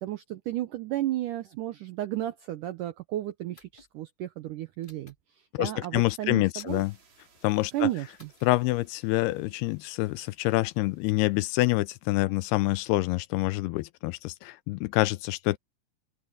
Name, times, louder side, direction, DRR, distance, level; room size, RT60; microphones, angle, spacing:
voice 1, 0.0-6.8 7.7-8.3, right 14 dB, 85° right, 1.8 m, -33 dB
sound 1, 3.5-3.9 4.8-5.2 6.5-6.9 8.2-8.5, left 2 dB, 25° left, 1.1 m, -56 dB
voice 2, 5.5-6.9 7.4-7.9 8.4-15.6, left 20 dB, 80° left, 2.4 m, -26 dB
sound 2, 6.7-12.3, right 5 dB, 65° right, 7.1 m, -65 dB
open air
omnidirectional pair, 4.8 m